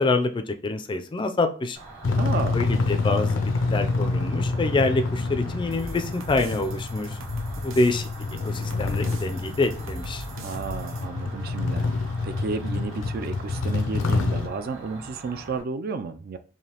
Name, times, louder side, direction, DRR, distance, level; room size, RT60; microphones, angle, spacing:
voice 1, 0.0-1.8 2.5-7.2 7.6-8.1 8.4-10.2, left 3 dB, 25° left, 0.4 m, -26 dB
Cricket, 1.7-15.6, right 2 dB, 70° right, 1.8 m, -44 dB
sound 1, 2.0-14.5, left 3 dB, 80° left, 0.5 m, -27 dB
voice 2, 2.2-2.6 10.4-11.9 12.2-16.4, right 4 dB, 50° right, 0.4 m, -32 dB
sound 2, 5.7-11.0, right 3 dB, 90° right, 0.7 m, -41 dB
4.8 x 2.7 x 2.9 m
head